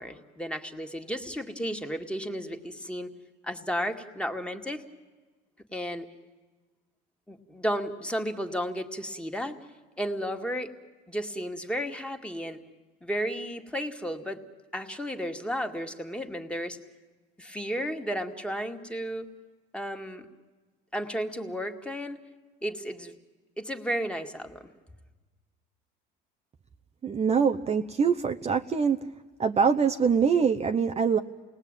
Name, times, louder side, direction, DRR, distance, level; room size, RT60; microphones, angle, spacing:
voice 1, 0.0-3.1 3.4-4.8 5.7-6.1 7.3-9.6 10.0-10.7 11.1-12.6 13.0-14.4 14.7-16.8 17.4-19.3 19.7-20.3 20.9-22.2 22.6-23.1 23.6-24.7, equal, 5° left, 4 dB, 2.0 m, -33 dB
voice 2, 27.0-29.0 29.4-31.2, right 6 dB, 30° right, 6 dB, 0.8 m, -24 dB
28.5 x 19.0 x 9.1 m, 1.3 s
supercardioid pair, 90°, 21 cm